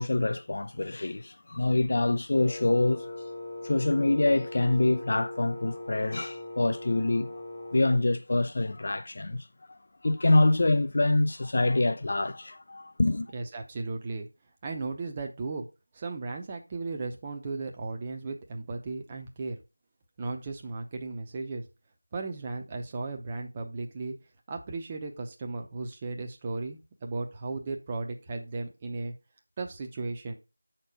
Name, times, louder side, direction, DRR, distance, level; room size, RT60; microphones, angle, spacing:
voice 1, 0.0-3.2 3.6-7.4 7.7-13.3, left 2 dB, 40° left, 0.5 m, -26 dB
Wind instrument woodwind instrument, 2.3-8.1, left 2 dB, 20° left, 1.2 m, -40 dB
voice 2, 13.3-14.3 14.6-15.7 15.9-19.6 20.2-21.6 22.1-24.1 24.5-29.1 29.6-30.3, right 3 dB, 15° right, 0.7 m, -35 dB
7.6 x 4.4 x 4.9 m
figure-of-eight pair, 170°, 0 cm